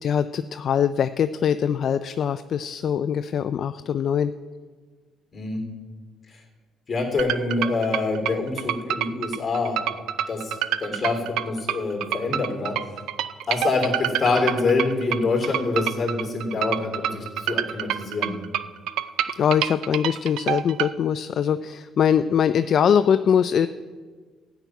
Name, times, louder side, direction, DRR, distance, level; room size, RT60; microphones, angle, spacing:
voice 1, 0.0-4.3 19.4-23.7, left 8 dB, 50° left, 12 dB, 0.3 m, -22 dB
voice 2, 6.9-9.8 10.3-13.0 13.5-18.4, left 3 dB, 30° left, 2 dB, 3.4 m, -25 dB
sound 1, 7.2-20.9, right 11 dB, 80° right, 0.4 m, -27 dB
13.0 x 6.0 x 9.3 m, 1.5 s
cardioid pair, 115°, 0 cm